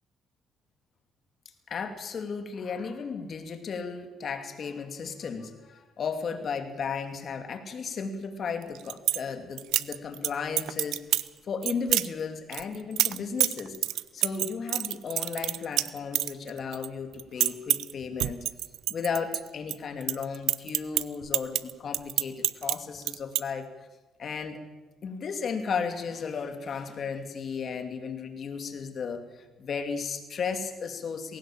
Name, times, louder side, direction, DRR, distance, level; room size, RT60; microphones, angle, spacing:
voice 1, 1.7-11.0 11.4-18.4 18.9-23.7 24.2-24.6 25.0-31.4, left 5 dB, 55° left, 6 dB, 2.7 m, -34 dB
sound 1, 8.6-9.2 9.6-10.3 10.6-11.3 11.6-12.1 12.5-16.9 17.1-17.9 18.2-19.7 20.0-22.8 23.0-23.4, right 14 dB, 90° right, 0.6 m, -27 dB
20.5 x 17.5 x 7.4 m, 1.1 s
cardioid pair, 90°, 0 cm